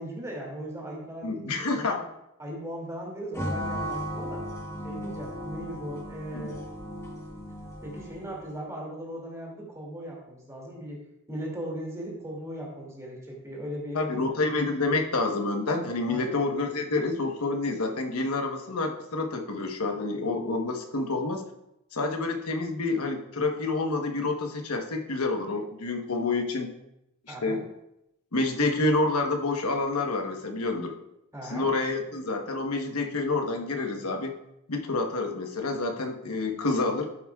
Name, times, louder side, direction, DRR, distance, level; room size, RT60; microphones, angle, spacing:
voice 1, 0.0-2.0 2.4-4.4 4.8-6.6 7.8-11.0 11.3-14.2 16.1-16.4 27.3-27.6 31.3-31.7, equal, 15° right, -2 dB, 2.4 m, -38 dB
voice 2, 1.2-2.0 6.3-6.6 13.9-21.4 21.9-26.7 27.3-27.7 28.3-31.0 31.4-34.3 34.7-37.1, left 3 dB, 75° left, 4 dB, 1.1 m, -28 dB
sound 1, 3.3-8.5, equal, 10° left, 1.1 m, -36 dB
12.0 x 8.3 x 2.4 m, 0.84 s
head